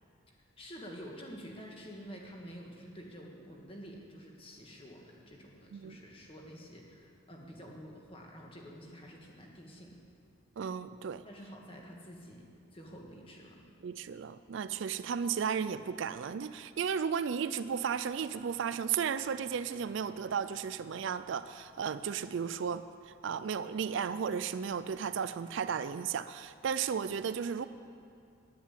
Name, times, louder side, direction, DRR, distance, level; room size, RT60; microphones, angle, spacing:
voice 1, 0.6-10.0 11.2-12.4 12.7-13.7, equal, 25° left, 0 dB, 1.6 m, -49 dB
voice 2, 10.6-11.2 13.8-27.7, right 7 dB, 60° right, 13 dB, 0.4 m, -34 dB
10.5 x 10.0 x 8.4 m, 2.5 s
head